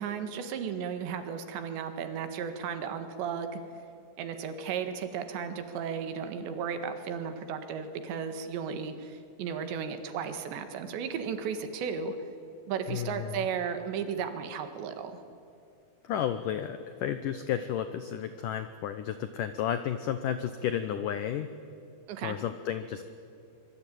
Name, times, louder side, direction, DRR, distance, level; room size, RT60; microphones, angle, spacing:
voice 1, 0.0-3.6 4.2-12.2 12.7-15.2 22.1-22.4, right 7 dB, 75° right, 8 dB, 3.9 m, -35 dB
voice 2, 12.9-13.5 16.0-21.5 22.2-23.0, left 9 dB, 90° left, 10 dB, 1.9 m, -32 dB
25.5 x 23.0 x 9.2 m, 2.5 s
omnidirectional pair, 5.1 m